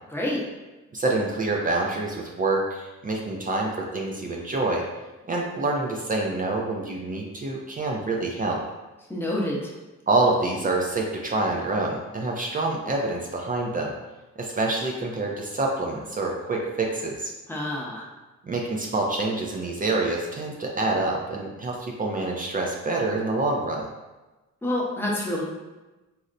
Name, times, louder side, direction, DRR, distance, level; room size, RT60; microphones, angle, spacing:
voice 1, 0.1-0.4 9.1-9.7 17.5-18.1 24.6-25.4, left 1 dB, 10° left, -4 dB, 0.7 m, -27 dB
voice 2, 0.9-4.8 5.3-8.6 10.1-13.9 14.4-17.3 18.4-23.8, right 2 dB, 30° right, 0 dB, 0.4 m, -26 dB
4.0 x 2.0 x 2.5 m, 1.1 s
cardioid pair, 90°, 30 cm